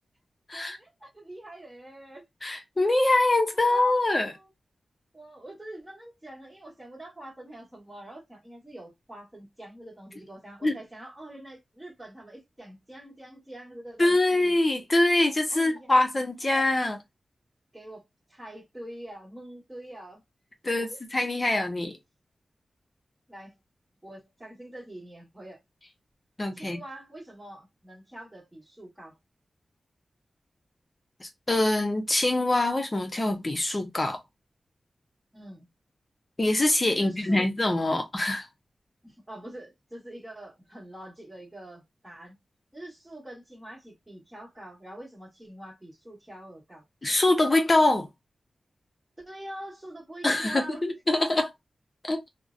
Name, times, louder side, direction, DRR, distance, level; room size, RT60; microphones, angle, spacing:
voice 1, 0.5-2.2 3.5-4.5 5.1-14.6 15.5-15.9 16.4-16.6 17.7-20.2 20.6-21.0 23.3-23.5 24.0-25.6 26.5-29.2 35.3-35.7 36.9-37.5 39.0-42.4 42.7-46.8 49.2-50.8, right 1 dB, 10° right, 1.3 m, -45 dB
voice 2, 2.4-4.4 10.6-10.8 14.0-17.0 20.6-22.0 26.4-26.8 31.2-34.2 36.4-38.4 47.0-48.1 50.2-51.5 52.0-52.2, left 2 dB, 35° left, 0.7 m, -24 dB
2.5 x 2.1 x 2.5 m
wide cardioid pair, 80°, 0 cm